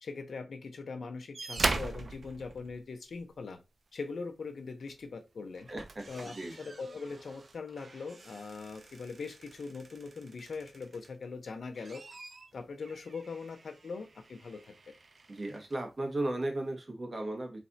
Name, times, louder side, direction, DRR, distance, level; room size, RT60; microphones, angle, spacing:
voice 1, 0.0-3.6 3.9-5.7 6.1-12.0 12.5-14.8, left 4 dB, 85° left, 0.7 m, -41 dB
sound 1, 1.3-3.4 4.9-5.1 5.5-11.2 11.6-15.8 16.7-16.8, right 3 dB, 65° right, 0.6 m, -41 dB
voice 2, 5.4-6.5 15.3-17.6, right 1 dB, 45° right, 1.5 m, -36 dB
4.2 x 3.4 x 2.6 m
cardioid pair, 50°, 0 cm